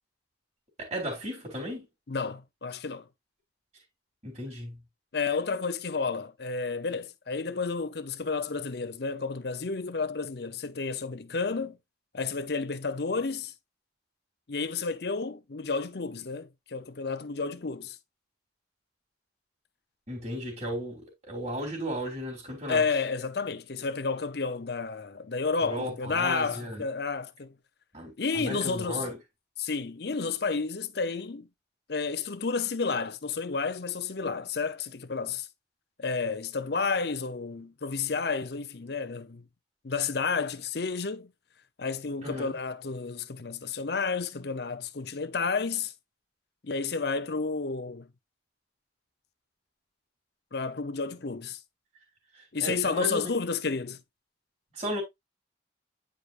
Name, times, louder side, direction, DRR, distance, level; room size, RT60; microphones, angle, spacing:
voice 1, 0.8-1.9 4.2-4.8 20.1-22.8 25.6-26.8 27.9-29.2 42.2-42.5 52.3-53.3 54.7-55.0, equal, 35° right, 3.1 m, -35 dB
voice 2, 2.1-3.1 5.1-11.8 12.1-13.5 14.5-18.0 22.7-27.5 28.2-29.1 29.6-31.5 31.9-35.5 36.0-39.4 39.8-41.3 41.8-45.9 46.6-48.1 50.5-51.6 52.5-54.0, left 4 dB, 55° left, 0.7 m, -31 dB
9.7 x 5.0 x 2.5 m
head